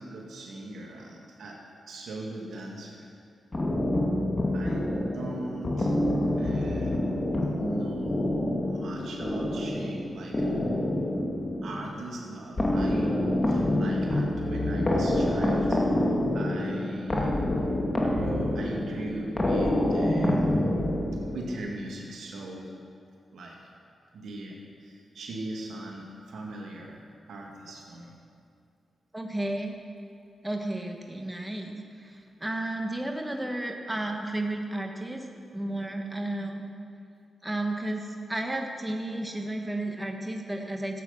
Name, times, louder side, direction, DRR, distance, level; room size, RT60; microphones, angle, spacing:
voice 1, 0.0-3.1 4.5-5.9 6.4-6.9 7.4-8.2 8.6-10.6 11.6-16.0 16.3-17.3 18.0-20.4 21.3-22.8 23.3-23.6 24.1-27.0 27.3-28.2, right 2 dB, 75° right, -1 dB, 2.2 m, -39 dB
sound 1, 3.5-21.6, left 1 dB, 30° left, 2.1 m, -27 dB
voice 2, 29.1-29.8 30.4-35.2 35.5-36.7 37.4-41.0, right 1 dB, 15° right, 3 dB, 1.3 m, -33 dB
13.5 x 8.3 x 5.8 m, 2.4 s
cardioid pair, 55°, 0 cm